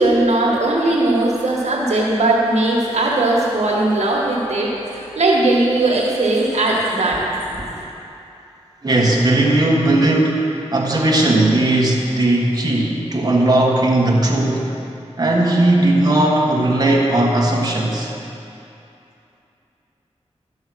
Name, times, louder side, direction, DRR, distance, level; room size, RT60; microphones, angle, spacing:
voice 1, 0.0-7.9, right 2 dB, 80° right, -3 dB, 1.6 m, -18 dB
voice 2, 8.8-14.7 15.2-18.1, right 1 dB, 35° right, -3 dB, 1.5 m, -17 dB
12.0 x 5.6 x 6.2 m, 2.7 s
wide cardioid pair, 65°, 11 cm